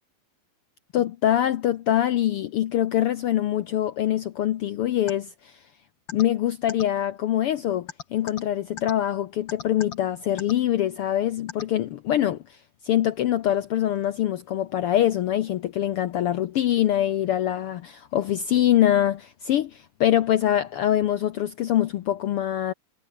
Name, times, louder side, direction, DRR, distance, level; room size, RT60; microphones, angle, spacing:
voice 1, 0.9-5.5 6.1-12.6 12.8-22.7, left 12 dB, 75° left, 1.3 m, -24 dB
sound 1, 5.1-5.2 6.1-6.2 6.7-6.8 7.9-8.4 8.8-8.9 9.5-10.0 10.4-10.5 11.5-11.6, left 6 dB, 40° left, 2.5 m, -35 dB
omnidirectional pair, 3.4 m